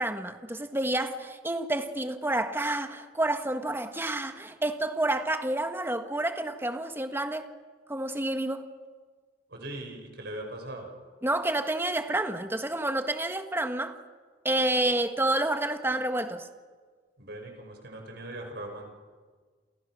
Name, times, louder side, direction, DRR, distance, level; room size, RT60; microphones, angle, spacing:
voice 1, 0.0-7.5 7.9-8.6 11.2-14.0 14.4-16.5, right 1 dB, 15° right, 1.5 m, -29 dB
voice 2, 9.5-10.9 17.2-18.9, right 1 dB, 60° right, 6.1 m, -40 dB
29.5 x 28.5 x 6.4 m
head